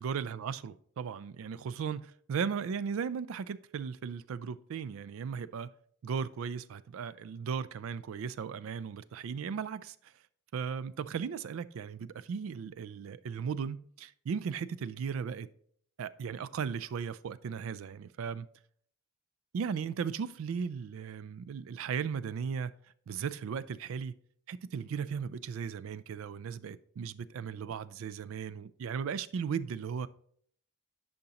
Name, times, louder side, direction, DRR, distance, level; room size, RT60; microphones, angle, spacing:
voice 1, 0.0-5.7 6.0-10.1 10.5-15.5 16.0-18.5 19.5-22.7 23.1-24.2 24.5-30.1, right 6 dB, 70° right, 0.3 m, -36 dB
10.5 x 5.2 x 2.9 m
head